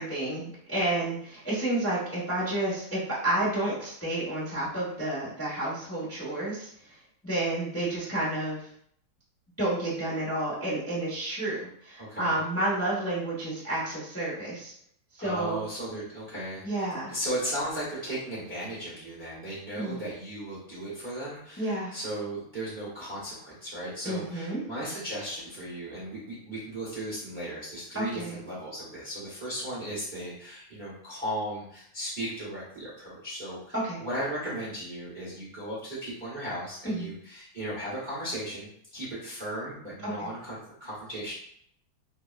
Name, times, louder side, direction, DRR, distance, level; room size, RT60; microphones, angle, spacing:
voice 1, 0.0-6.7 7.2-8.7 9.6-14.7 15.1-15.6 16.6-17.1 19.7-20.0 21.6-21.9 24.0-24.6 27.9-28.4 33.7-34.0 36.8-37.1 40.0-40.3, right 1 dB, 20° left, -9 dB, 0.3 m, -30 dB
voice 2, 12.0-12.4 15.2-33.7 34.0-41.3, right 1 dB, 45° right, -9 dB, 0.6 m, -36 dB
3.4 x 2.1 x 2.4 m, 0.66 s
omnidirectional pair, 2.3 m